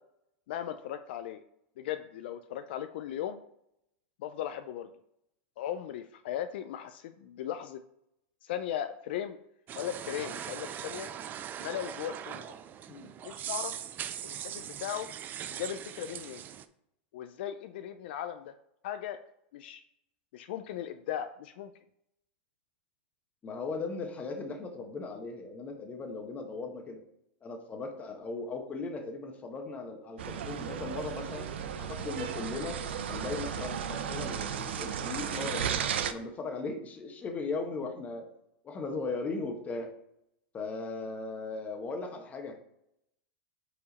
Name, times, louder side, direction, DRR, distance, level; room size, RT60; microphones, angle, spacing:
voice 1, 0.5-1.4 1.8-3.4 4.2-4.9 5.6-7.8 8.4-9.4 9.7-11.1 11.6-12.6 13.2-13.7 14.2-15.1 15.5-16.4 17.1-18.5 18.8-19.2 19.5-19.8 20.3-21.7, left 10 dB, 70° left, 9 dB, 0.4 m, -37 dB
sound 1, 9.7-16.7, right 10 dB, 30° right, 0.4 m, -40 dB
voice 2, 23.4-27.0 27.4-31.5 31.8-32.8 33.1-38.3 38.6-39.9 40.5-42.6, left 3 dB, 25° left, 4 dB, 1.2 m, -38 dB
sound 2, 30.2-36.1, right 8 dB, 85° right, 0.5 m, -35 dB
5.0 x 4.8 x 4.1 m, 0.77 s
supercardioid pair, 125°, 6 cm